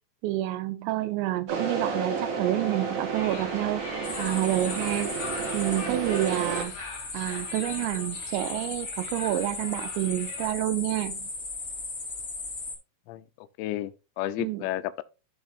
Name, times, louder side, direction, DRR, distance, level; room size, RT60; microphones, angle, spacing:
voice 1, 0.2-5.1 5.5-11.3 14.4-14.6, right 15 dB, 85° right, 3.0 m, -29 dB
sound 1, 1.5-6.6, right 5 dB, 55° right, 2.0 m, -31 dB
sound 2, 3.1-10.5, left 4 dB, 45° left, 2.3 m, -42 dB
sound 3, 4.0-12.7, left 3 dB, 20° left, 3.1 m, -37 dB
voice 2, 13.1-15.0, left 15 dB, 85° left, 2.8 m, -33 dB
14.5 x 4.9 x 2.6 m
omnidirectional pair, 5.2 m